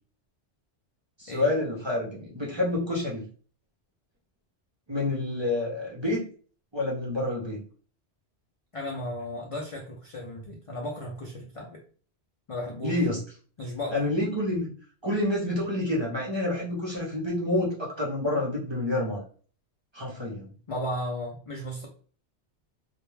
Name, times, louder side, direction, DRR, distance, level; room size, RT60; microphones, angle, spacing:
voice 1, 1.2-3.2 4.9-6.2 6.7-7.6 12.8-13.2 13.9-14.7 15.0-19.2 19.9-20.5, left 1 dB, 35° right, -4 dB, 0.5 m, -28 dB
voice 2, 8.7-11.8 12.5-13.1 13.6-14.0 20.7-21.9, left 1 dB, 60° left, 0 dB, 0.3 m, -35 dB
2.2 x 2.1 x 3.1 m, 0.42 s
omnidirectional pair, 1.2 m